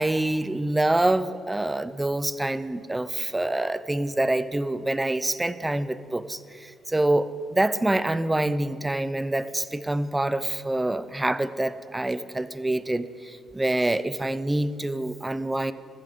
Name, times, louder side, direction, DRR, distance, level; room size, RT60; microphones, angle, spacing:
voice 1, 0.0-15.7, right 1 dB, 15° right, 14 dB, 0.5 m, -26 dB
14.5 x 9.6 x 5.0 m, 2.4 s
cardioid pair, 90°, 0 cm